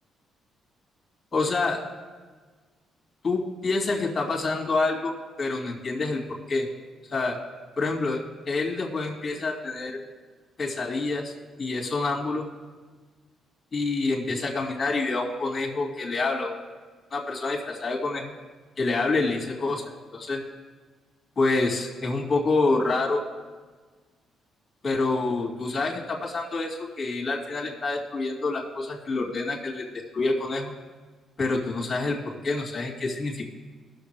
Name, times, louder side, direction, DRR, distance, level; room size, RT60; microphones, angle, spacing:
voice 1, 1.3-1.8 3.2-5.1 5.4-6.7 7.1-7.4 7.8-10.0 10.6-11.3 11.6-12.4 13.7-16.6 17.1-18.3 18.8-20.4 21.4-23.2 24.8-29.8 30.1-30.7 31.4-33.4, left 3 dB, 35° left, 0 dB, 2.5 m, -27 dB
19.0 x 6.8 x 3.4 m, 1.4 s
cardioid pair, 90°, 0 cm